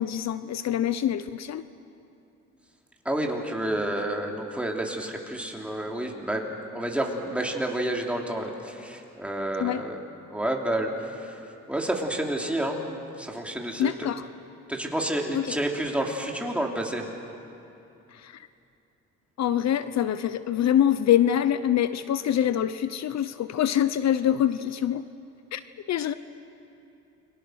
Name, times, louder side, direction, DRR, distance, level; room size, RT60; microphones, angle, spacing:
voice 1, 0.0-1.6 9.6-9.8 13.8-14.3 15.3-15.6 18.1-18.4 19.4-25.1 25.5-25.6 25.9-26.1, left 10 dB, 65° left, 13 dB, 0.7 m, -25 dB
voice 2, 3.0-10.0 10.3-11.4 11.7-12.8 13.2-13.9 14.7-17.1, right 1 dB, 5° right, 0 dB, 3.1 m, -29 dB
29.5 x 23.0 x 6.4 m, 2.8 s
cardioid pair, 105°, 29 cm